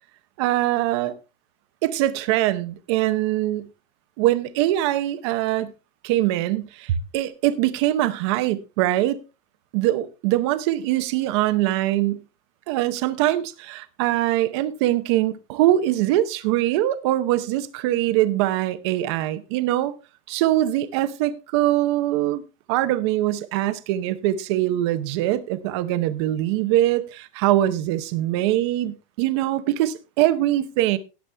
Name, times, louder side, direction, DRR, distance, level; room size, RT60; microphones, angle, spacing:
voice 1, 0.4-1.1 1.8-3.7 4.2-5.7 6.0-9.2 9.7-12.2 12.7-19.9 20.3-22.4 22.7-31.0, right 14 dB, 25° right, 0.7 m, -22 dB
17.5 x 7.1 x 3.3 m
supercardioid pair, 180°, 34 cm